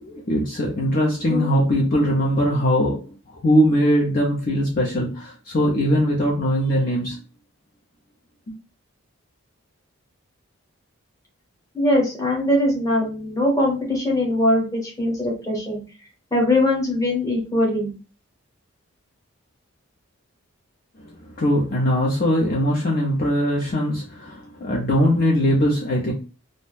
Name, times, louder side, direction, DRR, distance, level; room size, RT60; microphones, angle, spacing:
voice 1, 0.0-7.2 8.5-8.6 21.0-26.1, equal, 40° left, -3 dB, 0.5 m, -21 dB
voice 2, 11.7-15.8 16.3-17.9, left 1 dB, 15° left, -3 dB, 0.9 m, -21 dB
2.5 x 2.1 x 3.2 m, 0.35 s
head